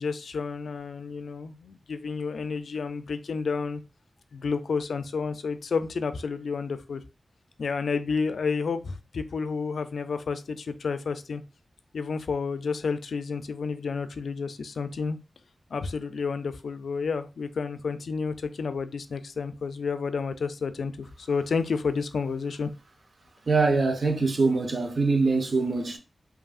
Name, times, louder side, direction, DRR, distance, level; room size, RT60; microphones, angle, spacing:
voice 1, 0.0-3.8 4.3-7.0 7.6-11.4 11.9-15.2 15.7-22.7, left 5 dB, 85° left, 0.4 m, -30 dB
voice 2, 23.5-26.0, right 3 dB, 55° right, 0.8 m, -23 dB
4.9 x 2.7 x 2.4 m
wide cardioid pair, 80°, 0 cm